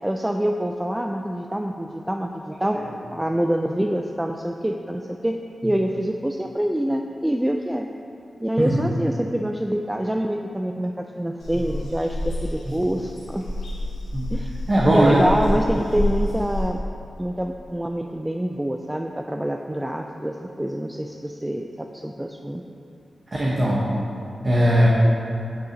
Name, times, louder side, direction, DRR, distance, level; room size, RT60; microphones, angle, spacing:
voice 1, 0.0-2.8 3.1-5.4 5.6-7.9 8.4-13.4 14.3-14.5 14.9-16.8 17.2-22.6, right 1 dB, 15° right, 3 dB, 0.3 m, -26 dB
sound 1, 11.4-16.7, left 1 dB, 90° left, 1.2 m, -28 dB
voice 2, 14.7-15.2 23.3-23.9 24.4-24.9, equal, 40° right, -5 dB, 1.1 m, -18 dB
8.1 x 6.5 x 2.8 m, 2.7 s
cardioid pair, 40°, 0 cm